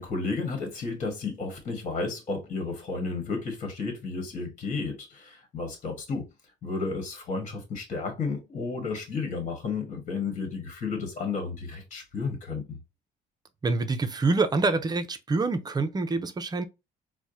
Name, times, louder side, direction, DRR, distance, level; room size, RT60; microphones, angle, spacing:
voice 1, 0.0-6.2 6.6-12.8, left 4 dB, 45° left, 1.4 m, -32 dB
voice 2, 13.6-16.6, right 3 dB, 25° right, 0.5 m, -26 dB
4.5 x 2.1 x 2.6 m
cardioid pair, 110°, 17 cm